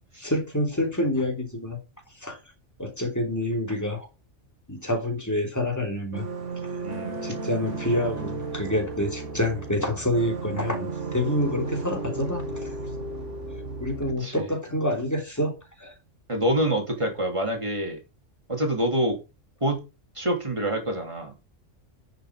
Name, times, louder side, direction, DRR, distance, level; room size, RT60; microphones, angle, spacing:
voice 1, 0.2-1.8 2.1-2.4 2.8-4.1 4.7-6.3 7.2-12.7 13.8-15.5 15.8-15.9, left 1 dB, 15° left, 3 dB, 3.1 m, -27 dB
sound 1, 6.1-14.1, right 3 dB, 70° right, 2.1 m, -34 dB
voice 2, 6.8-7.2 14.2-14.5 16.3-18.0 18.5-19.2 19.6-19.8 20.1-21.3, right 1 dB, 25° right, 2 dB, 3.3 m, -26 dB
11.0 x 6.4 x 5.0 m, 0.29 s
omnidirectional pair, 1.3 m